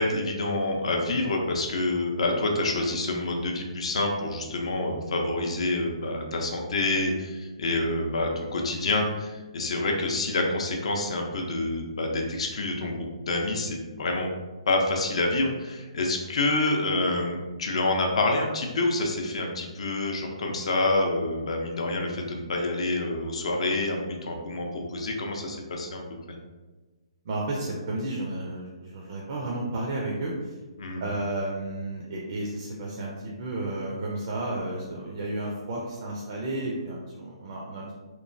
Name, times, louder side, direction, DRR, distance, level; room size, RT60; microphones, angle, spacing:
voice 1, 0.0-14.3 14.7-26.0 26.3-26.4 30.8-31.0, left 2 dB, 65° left, 1 dB, 0.5 m, -27 dB
voice 2, 27.2-30.6 31.0-37.9, right 2 dB, 40° right, -3 dB, 0.4 m, -32 dB
2.9 x 2.2 x 2.5 m, 1.2 s
hypercardioid pair, 165°, 3 cm